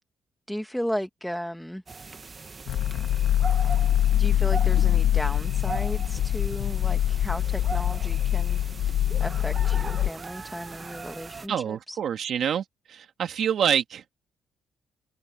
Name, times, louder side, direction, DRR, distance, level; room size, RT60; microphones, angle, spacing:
voice 1, 0.5-1.8 4.2-8.6 9.2-12.0, equal, ahead, 1.7 m, -35 dB
sound 1, 1.9-11.5, right 4 dB, 30° right, 1.4 m, -40 dB
sound 2, 2.7-10.1, left 11 dB, 85° left, 1.6 m, -24 dB
voice 2, 11.5-12.6 12.9-14.0, right 8 dB, 65° right, 2.3 m, -26 dB
cardioid pair, 90°, 0 cm